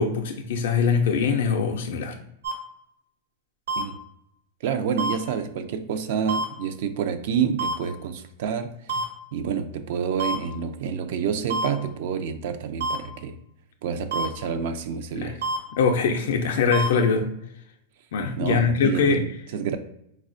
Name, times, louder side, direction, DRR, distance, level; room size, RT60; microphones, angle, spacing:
voice 1, 0.0-2.2 15.1-15.3 15.8-17.3 18.1-19.2, left 5 dB, 75° left, 3 dB, 0.3 m, -22 dB
sound 1, 2.4-2.5 3.7-3.8 5.0-5.1 6.3-6.4 7.6-7.7 8.9-9.0 10.2-10.4 11.5-11.7 12.8-13.0 14.1-14.3 15.4-15.6 16.7-16.9, right 3 dB, 85° right, 1.1 m, -26 dB
voice 2, 4.6-8.7 9.3-13.4 13.8-15.4 18.4-19.8, right 7 dB, 65° right, 8 dB, 0.4 m, -28 dB
4.1 x 2.2 x 2.5 m, 0.77 s
hypercardioid pair, 125°, 0 cm